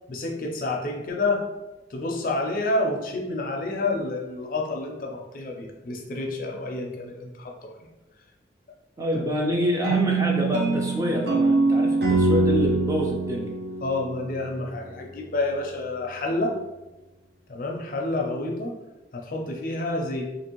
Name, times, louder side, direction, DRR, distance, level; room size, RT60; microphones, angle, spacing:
voice 1, 0.1-1.4 1.9-7.7 13.8-16.5 17.5-18.7 19.1-20.2, left 2 dB, 50° left, 1 dB, 0.4 m, -29 dB
voice 2, 9.0-13.5, equal, 20° right, 0 dB, 0.3 m, -27 dB
sound 1, 9.8-14.7, right 3 dB, 65° right, 0.6 m, -24 dB
2.7 x 2.6 x 2.9 m, 1.0 s
head